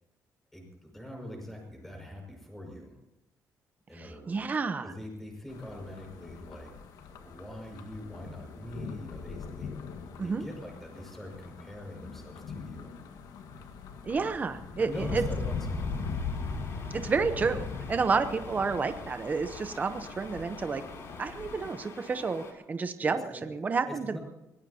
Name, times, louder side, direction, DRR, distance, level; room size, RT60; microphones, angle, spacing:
voice 1, 0.5-3.0 3.9-4.5 4.8-6.7 7.1-9.8 10.1-12.9 14.8-16.2 23.0-23.4 23.8-24.2, equal, 5° left, 1 dB, 5.8 m, -43 dB
voice 2, 3.9-4.9 10.2-10.5 14.0-15.2 16.9-20.8 21.2-24.2, right 4 dB, 25° right, 9 dB, 0.8 m, -30 dB
sound 1, 5.5-21.7, left 4 dB, 80° left, 1.7 m, -40 dB
sound 2, 14.9-22.5, left 3 dB, 50° left, 3.2 m, -47 dB
23.0 x 18.5 x 2.9 m, 0.95 s
cardioid pair, 150°, 6 cm